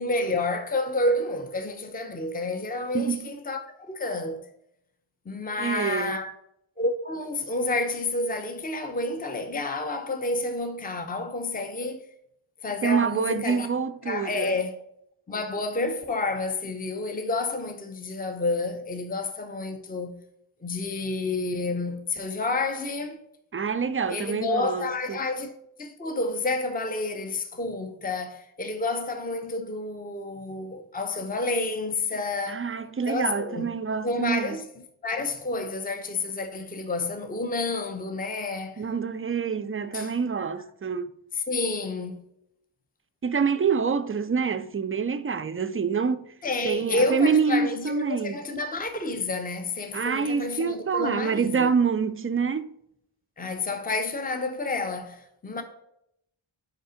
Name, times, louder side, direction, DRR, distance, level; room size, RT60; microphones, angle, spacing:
voice 1, 0.0-3.6 3.9-4.4 5.3-6.3 6.8-12.0 12.6-13.7 14.1-14.7 15.3-20.2 20.6-23.2 24.1-25.5 25.8-32.6 33.1-33.7 34.0-34.6 35.0-38.8 39.9-40.5 41.3-42.2 46.4-51.7 53.4-55.6, left 2 dB, 15° left, 0.7 m, -29 dB
voice 2, 2.9-3.3 5.6-6.2 12.8-14.6 23.5-25.2 32.5-34.6 38.8-41.1 43.2-46.3 46.6-48.4 49.9-52.7, right 5 dB, 30° right, 0.3 m, -26 dB
5.3 x 5.0 x 4.9 m
wide cardioid pair, 70°, 50 cm